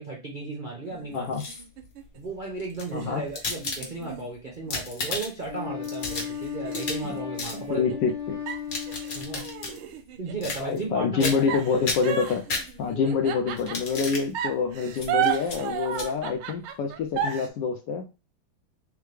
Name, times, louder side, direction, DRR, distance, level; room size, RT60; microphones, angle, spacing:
voice 1, 0.0-1.3 2.1-8.0 9.1-9.5 10.2-11.4 11.7-11.8 12.9-13.2, right 3 dB, 65° right, -2 dB, 0.4 m, -35 dB
sound 1, 0.9-2.2 2.9-5.1 5.6-5.7 6.1-8.1 8.5-10.5 11.5-14.0 14.3-17.5, right 10 dB, 85° right, 1.5 m, -33 dB
sound 2, 1.1-1.8 2.6-4.2 4.6-5.5 5.8-7.1 7.4-7.6 8.5-9.8 10.4-10.9 11.2-11.6 11.8-13.1 13.6-14.3 15.0-15.1 15.4-15.6 15.9-16.1, left 3 dB, 50° left, 1.3 m, -33 dB
voice 2, 2.9-3.2 7.0-7.1 7.7-8.4 10.6-12.4 12.8-18.1, left 5 dB, 75° left, 4 dB, 1.1 m, -26 dB
Wind instrument woodwind instrument, 5.5-9.8, left 9 dB, 25° left, 0.9 m, -36 dB
3.7 x 3.4 x 3.3 m, 0.30 s
omnidirectional pair, 2.3 m